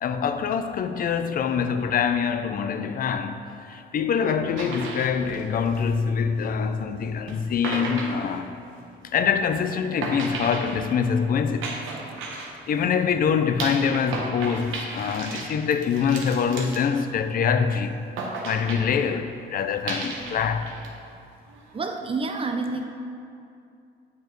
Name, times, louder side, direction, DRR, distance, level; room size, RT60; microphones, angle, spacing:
voice 1, 0.0-8.6 9.1-11.7 12.7-18.0 18.4-20.7, left 6 dB, 45° left, 0.4 m, -25 dB
sound 1, 4.6-6.3 7.3-7.4 7.6-9.0 10.0-12.9 13.6-17.5 18.2-19.1 19.9-20.9 21.2-21.8, right 3 dB, 90° right, 0.9 m, -34 dB
voice 2, 21.7-22.8, right 3 dB, 30° right, 0.6 m, -28 dB
8.2 x 4.5 x 3.1 m
cardioid pair, 90°, 20 cm